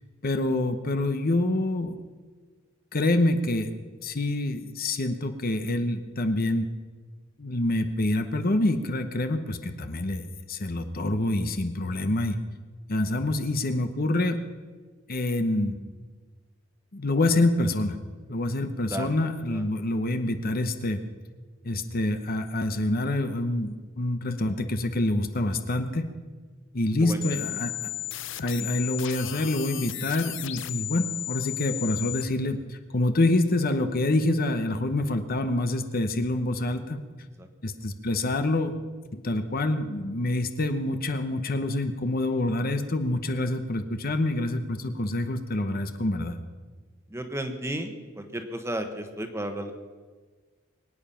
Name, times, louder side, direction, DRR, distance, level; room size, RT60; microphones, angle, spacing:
voice 1, 0.2-2.0 2.9-3.7 4.0-6.7 7.4-12.4 12.9-14.4 15.1-15.8 16.9-18.0 18.3-21.0 21.6-26.0 26.7-27.9 28.4-37.0 37.6-38.7 39.1-46.4, left 2 dB, 45° left, 8 dB, 1.0 m, -26 dB
sound 1, 27.2-32.2, left 17 dB, 65° left, 0.6 m, -35 dB
voice 2, 47.1-49.7, right 1 dB, 15° right, 6 dB, 1.3 m, -33 dB
23.5 x 9.3 x 5.8 m, 1.4 s
head